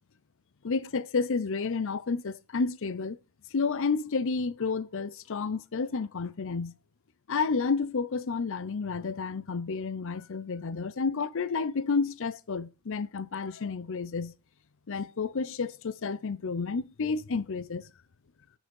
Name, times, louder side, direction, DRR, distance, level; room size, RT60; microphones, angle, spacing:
voice 1, 0.6-3.2 3.5-6.7 7.3-14.3 14.9-17.8, left 4 dB, 65° left, 0.6 m, -30 dB
9.4 x 6.1 x 5.3 m
head